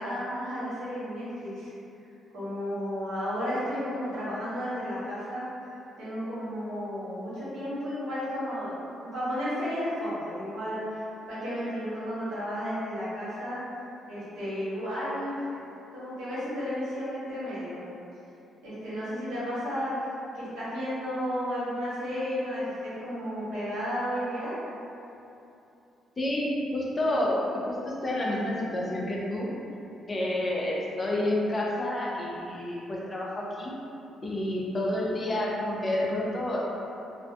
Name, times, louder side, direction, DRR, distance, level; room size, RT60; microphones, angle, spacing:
voice 1, 0.0-1.7 2.3-5.4 6.0-8.7 9.0-11.0 11.3-13.6 14.1-15.5 15.9-17.8 18.6-19.9 20.3-24.5, equal, 85° right, -11 dB, 1.1 m, -33 dB
voice 2, 26.2-29.5 30.1-33.7 34.2-36.6, left 1 dB, 30° left, -4 dB, 0.5 m, -29 dB
2.5 x 2.4 x 2.2 m, 2.8 s
cardioid pair, 90°, 0 cm